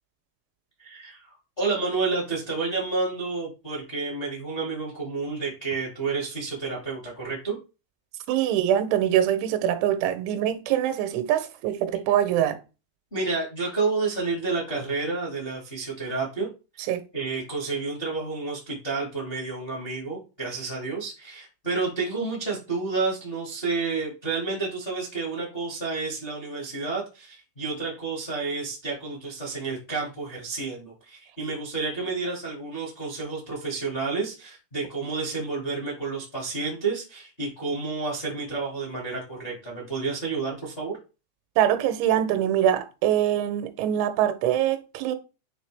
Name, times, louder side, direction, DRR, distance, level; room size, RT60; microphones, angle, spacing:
voice 1, 0.8-1.3 1.6-7.6 13.1-16.5 17.1-41.0, right 4 dB, 60° left, 0.5 m, -30 dB
voice 2, 8.3-12.6 16.9-17.0 41.6-45.2, right 11 dB, 90° right, 3.1 m, -23 dB
9.0 x 3.3 x 3.3 m
omnidirectional pair, 5.2 m